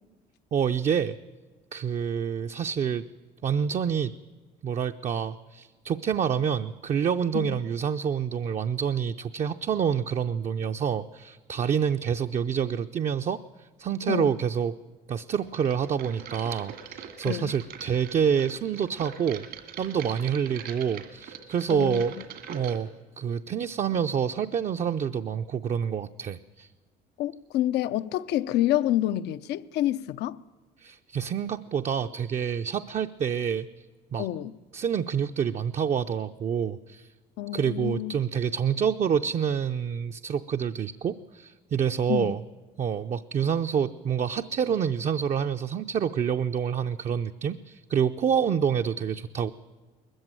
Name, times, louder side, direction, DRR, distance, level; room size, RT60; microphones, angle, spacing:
voice 1, 0.5-1.2 1.7-3.0 3.4-4.1 4.6-14.8 15.1-19.5 19.8-22.1 22.5-26.7 30.8-33.9 34.1-34.3 34.7-37.1 37.5-42.4 42.8-49.5, right 7 dB, 40° right, 0.5 m, -27 dB
sound 1, 15.5-22.8, right 8 dB, 75° right, 2.2 m, -42 dB
voice 2, 21.7-22.0 27.2-30.4 34.2-34.6 37.4-38.2 42.1-42.3, left 13 dB, 80° left, 0.6 m, -28 dB
20.5 x 14.5 x 9.0 m
cardioid pair, 110°, 17 cm